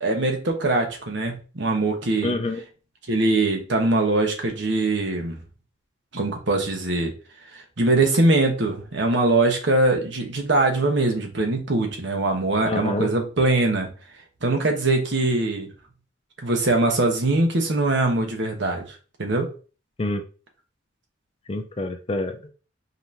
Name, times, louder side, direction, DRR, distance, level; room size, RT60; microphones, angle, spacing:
voice 1, 0.0-2.3 3.1-5.4 6.1-7.1 7.5-13.9 14.4-15.7 16.4-18.8 19.2-19.5, right 2 dB, 60° right, 3 dB, 1.0 m, -22 dB
voice 2, 2.2-2.6 12.6-13.1 20.0-20.2 21.5-22.5, left 2 dB, 30° left, 6 dB, 0.5 m, -27 dB
5.3 x 3.0 x 2.7 m, 0.36 s
head